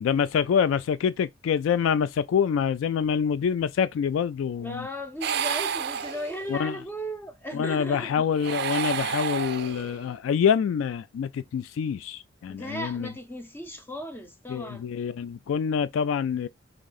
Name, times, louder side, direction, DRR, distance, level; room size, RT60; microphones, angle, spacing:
voice 1, 0.0-4.9 6.5-6.7 7.5-13.1 14.5-16.5, left 7 dB, 90° left, 0.3 m, -26 dB
voice 2, 4.6-8.2 12.5-14.9, equal, 10° left, 0.6 m, -36 dB
sound 1, 5.2-6.7 8.3-10.1, right 7 dB, 55° right, 0.4 m, -30 dB
3.7 x 3.4 x 3.9 m
head